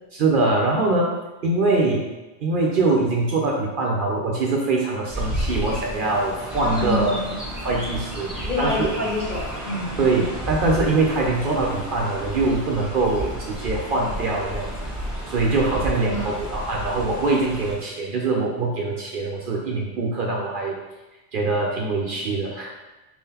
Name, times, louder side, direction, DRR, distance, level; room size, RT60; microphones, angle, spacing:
voice 1, 0.1-1.1 1.4-2.0 2.4-7.2 7.6-8.9 10.0-14.7 15.3-20.7 21.3-22.7, right 3 dB, 60° right, -1 dB, 0.7 m, -23 dB
Chirp tweet, 5.1-17.7, equal, ahead, 0.8 m, -32 dB
voice 2, 6.6-7.3 8.4-10.0 16.1-16.3, left 1 dB, 45° left, -5 dB, 1.1 m, -27 dB
4.4 x 3.7 x 2.8 m, 1.1 s
omnidirectional pair, 1.2 m